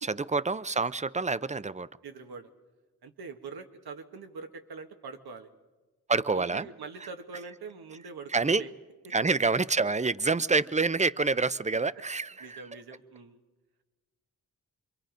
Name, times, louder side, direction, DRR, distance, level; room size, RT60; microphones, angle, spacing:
voice 1, 0.0-1.9 6.1-6.7 8.3-8.6 9.1-12.6, right 4 dB, 20° right, 0.7 m, -27 dB
voice 2, 2.0-2.5 3.0-5.5 6.3-8.7 9.0-9.1 12.4-13.4, right 5 dB, 85° right, 1.6 m, -44 dB
27.0 x 23.0 x 5.2 m
cardioid pair, 45°, 37 cm